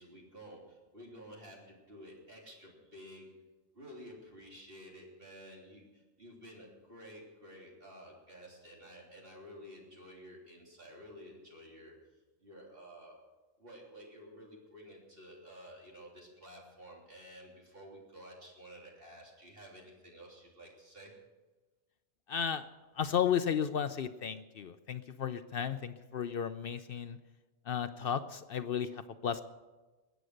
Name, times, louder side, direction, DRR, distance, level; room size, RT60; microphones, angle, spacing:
voice 1, 0.0-3.4 3.7-12.0 12.4-13.3 13.6-21.1, equal, 40° right, -2 dB, 3.4 m, -52 dB
voice 2, 22.3-22.6 23.0-27.2 27.7-29.4, left 8 dB, 60° left, 11 dB, 0.6 m, -34 dB
21.5 x 8.2 x 6.5 m, 1.2 s
omnidirectional pair, 1.4 m